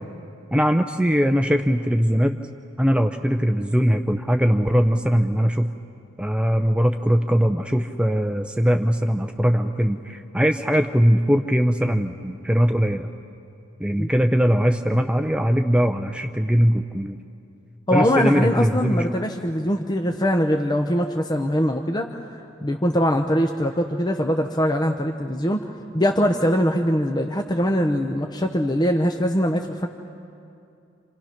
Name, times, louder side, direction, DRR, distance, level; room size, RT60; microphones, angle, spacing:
voice 1, 0.5-2.4 2.8-5.7 6.2-13.1 13.8-17.2 17.9-19.2, equal, 5° right, 6 dB, 0.6 m, -20 dB
voice 2, 17.9-29.9, equal, 20° left, 3 dB, 0.9 m, -22 dB
28.0 x 28.0 x 5.9 m, 2.6 s
head